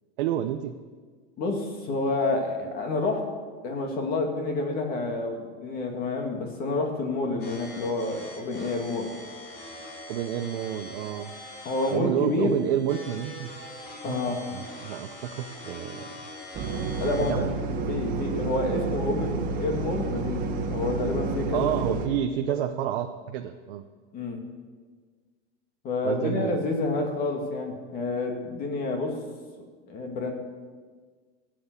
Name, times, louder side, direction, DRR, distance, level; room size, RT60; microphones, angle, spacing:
voice 1, 0.2-0.7 10.1-11.3 11.9-13.5 14.1-16.2 17.2-17.5 21.5-23.8 26.0-26.5, right 11 dB, 50° right, 5 dB, 0.8 m, -29 dB
voice 2, 1.4-3.2 3.6-9.1 11.6-12.5 14.0-14.4 17.0-21.7 24.1-24.4 25.8-29.1 29.9-30.3, left 2 dB, 25° left, 3 dB, 2.3 m, -29 dB
sound 1, 7.4-17.4, left 2 dB, 55° left, 4.7 m, -43 dB
sound 2, 16.5-22.1, right 3 dB, 25° right, 1.3 m, -30 dB
16.5 x 7.9 x 8.1 m, 1.5 s
supercardioid pair, 160°, 34 cm